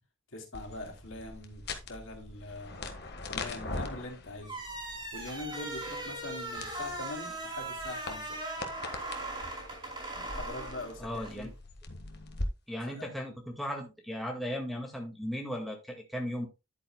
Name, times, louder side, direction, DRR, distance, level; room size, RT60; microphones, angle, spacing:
voice 1, 0.3-2.8 3.3-4.6 5.1-8.4 10.2-11.5 12.9-13.1, left 2 dB, 65° left, 2.9 m, -43 dB
sound 1, 0.5-12.5, left 2 dB, 50° left, 1.4 m, -42 dB
sound 2, 4.4-11.4, right 2 dB, 25° right, 5.0 m, -39 dB
voice 2, 11.0-11.5 12.7-16.5, equal, ahead, 1.8 m, -36 dB
11.0 x 8.8 x 2.2 m
head